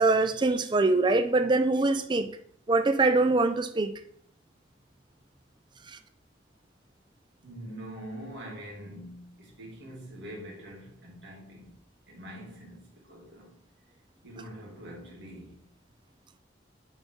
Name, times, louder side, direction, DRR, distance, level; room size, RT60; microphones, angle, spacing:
voice 1, 0.0-2.3 2.7-3.9, right 3 dB, 25° right, 0.5 m, -23 dB
voice 2, 7.4-11.7 12.1-13.6 14.2-15.6, right 1 dB, 80° right, 2.4 m, -44 dB
6.3 x 5.0 x 3.6 m
head